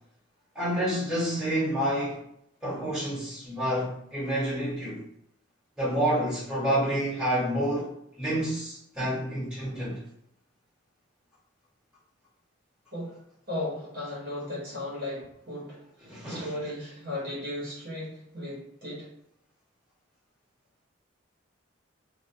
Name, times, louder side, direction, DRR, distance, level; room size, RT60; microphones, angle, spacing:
voice 1, 0.5-2.2 2.6-5.0 5.8-7.9 8.2-10.0 16.1-16.5, right 1 dB, 5° right, 1.2 m, -28 dB
voice 2, 12.9-13.2 13.5-19.1, left 1 dB, 45° right, 1.1 m, -36 dB
2.5 x 2.2 x 2.7 m
head